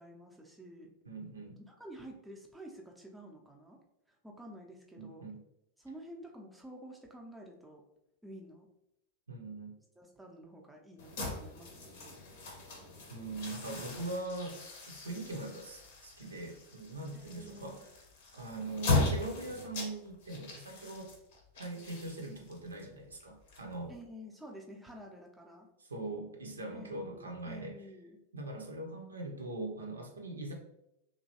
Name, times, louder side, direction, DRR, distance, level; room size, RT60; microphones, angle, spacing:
voice 1, 0.0-0.9 1.7-3.8 4.1-5.3 5.8-7.8 8.2-8.7 10.0-12.2 17.1-17.9 23.9-25.7 26.7-28.2, equal, 5° right, -1 dB, 0.5 m, -50 dB
voice 2, 1.1-1.6 5.0-5.4 9.3-9.8 13.1-14.6 14.9-17.8 18.3-21.1 21.5-23.9 25.8-27.7 28.3-30.5, right 2 dB, 75° right, 2 dB, 0.5 m, -41 dB
sound 1, 11.0-24.1, left 3 dB, 55° left, 0.7 m, -38 dB
3.0 x 2.5 x 2.7 m, 0.85 s
figure-of-eight pair, 90°, 0 cm